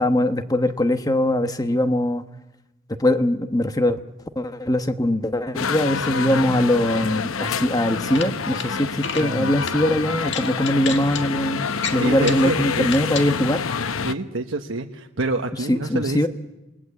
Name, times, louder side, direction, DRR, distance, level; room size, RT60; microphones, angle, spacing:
voice 1, 0.0-2.2 3.0-4.0 4.4-13.6 15.7-16.3, left 1 dB, 20° left, 9 dB, 1.1 m, -21 dB
sound 1, 5.5-14.1, left 5 dB, 90° left, 0.9 m, -27 dB
sound 2, 8.0-8.7 9.0-9.3 9.6-9.8 10.3-11.2 11.8-12.5 12.9-13.3, left 6 dB, 60° left, 1.9 m, -31 dB
voice 2, 9.2-9.6 11.6-12.9 14.0-16.3, right 2 dB, 75° right, 3 dB, 1.2 m, -27 dB
28.0 x 20.5 x 8.3 m, 0.99 s
head